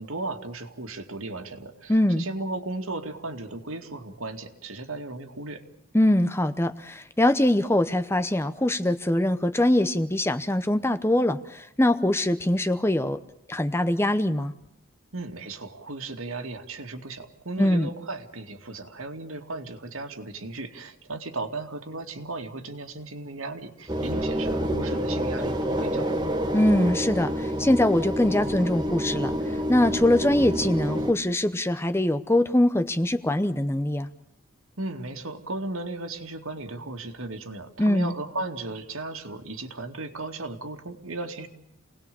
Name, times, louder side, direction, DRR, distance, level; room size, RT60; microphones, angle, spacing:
voice 1, 0.0-5.6 15.1-26.2 34.8-41.5, right 2 dB, 75° right, 5 dB, 2.5 m, -36 dB
voice 2, 1.9-2.2 5.9-13.2 13.5-14.5 17.6-17.9 26.5-34.1 37.8-38.1, left 1 dB, 10° left, 11 dB, 0.8 m, -23 dB
sound 1, 23.9-31.1, equal, 20° right, 1.8 m, -28 dB
29.0 x 19.5 x 7.0 m, 0.78 s
head